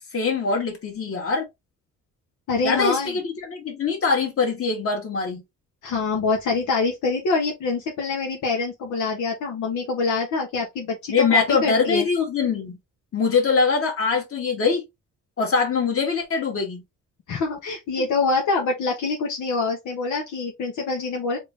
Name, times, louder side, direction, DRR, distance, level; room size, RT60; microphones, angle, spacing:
voice 1, 0.1-1.5 2.6-5.4 11.1-12.8 13.1-14.8 15.4-16.8, left 5 dB, 50° left, 2.0 m, -23 dB
voice 2, 2.5-3.1 5.8-12.1 17.3-21.4, left 4 dB, 75° left, 1.1 m, -25 dB
3.6 x 2.7 x 3.5 m
cardioid pair, 90°, 30 cm